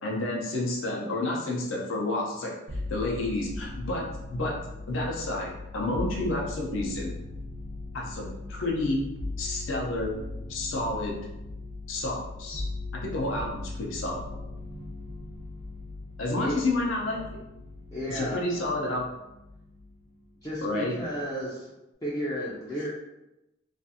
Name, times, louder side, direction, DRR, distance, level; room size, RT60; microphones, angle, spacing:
voice 1, 0.0-4.1 4.3-4.5 4.9-7.1 7.9-9.1 9.4-10.1 10.5-11.2 11.9-12.6 12.9-14.2 16.2-17.2 18.1-19.1 20.6-21.0, left 2 dB, 65° left, -2 dB, 0.6 m, -30 dB
sound 1, 2.7-20.1 20.4-21.2, left 2 dB, 60° right, 0.5 m, -39 dB
voice 2, 17.9-18.4 20.4-21.7 22.0-22.9, equal, 15° left, -7 dB, 0.4 m, -33 dB
2.4 x 2.4 x 2.7 m, 0.92 s
head